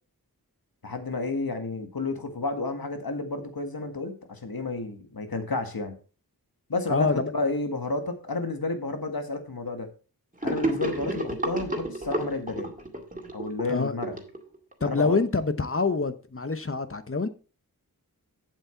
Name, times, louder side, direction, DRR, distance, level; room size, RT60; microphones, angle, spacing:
voice 1, 0.8-6.0 6.7-9.9 10.4-12.7 13.3-14.2 14.8-15.2, left 3 dB, 70° left, 1.7 m, -31 dB
voice 2, 6.9-7.3 13.7-13.9 14.8-17.3, left 4 dB, 35° left, 0.9 m, -26 dB
Gurgling / Sink (filling or washing), 10.4-14.9, right 1 dB, 20° right, 2.2 m, -31 dB
8.4 x 7.6 x 4.5 m
wide cardioid pair, 60°, 37 cm